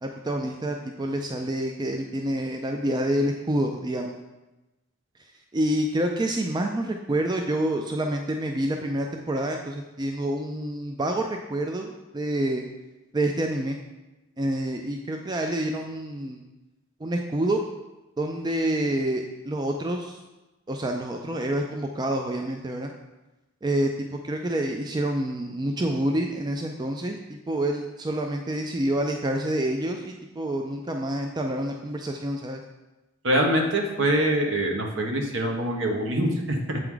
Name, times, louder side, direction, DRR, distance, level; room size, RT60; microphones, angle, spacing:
voice 1, 0.0-4.1 5.5-12.6 13.1-13.8 14.4-16.4 17.0-17.6 18.2-20.1 20.7-22.9 23.6-23.9 24.2-27.2 27.5-32.6, right 1 dB, 20° right, 3 dB, 0.3 m, -27 dB
voice 2, 33.2-36.8, right 1 dB, 65° right, 2 dB, 1.1 m, -24 dB
7.8 x 4.6 x 3.8 m, 1.1 s
head